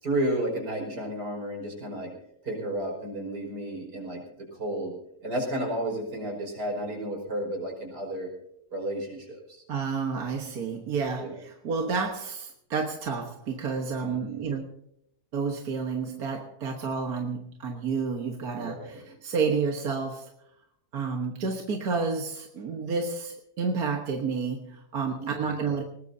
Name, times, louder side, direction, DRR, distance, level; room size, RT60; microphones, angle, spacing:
voice 1, 0.0-2.1 2.4-4.2 4.5-4.9 5.2-8.3 8.7-9.6 11.2-11.4 14.0-14.5 18.5-18.9 25.2-25.6, right 1 dB, 85° right, 0 dB, 5.7 m, -32 dB
voice 2, 9.7-14.7 15.3-20.3 20.9-25.8, right 5 dB, 65° right, 2 dB, 1.8 m, -30 dB
20.0 x 20.0 x 2.7 m, 0.73 s
omnidirectional pair, 1.7 m